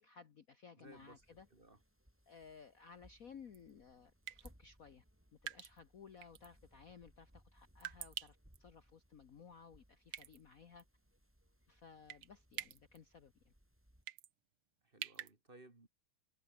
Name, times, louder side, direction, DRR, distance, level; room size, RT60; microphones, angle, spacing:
voice 1, 0.0-1.5 2.3-5.0 5.4-10.8 11.7-13.5, left 6 dB, 45° left, 1.3 m, -58 dB
voice 2, 0.8-1.2 1.5-1.8 14.8-15.9, right 2 dB, 25° right, 2.6 m, -60 dB
sound 1, 0.9-14.0, equal, 5° right, 5.0 m, -68 dB
sound 2, 3.5-3.7 4.3-4.5 5.5-5.8 6.2-6.5 7.8-8.6 10.1-10.4 10.8-10.9 12.1-12.3 12.5-13.0 14.1-14.3 15.0-15.3, right 12 dB, 85° right, 2.0 m, -46 dB
omnidirectional pair, 2.4 m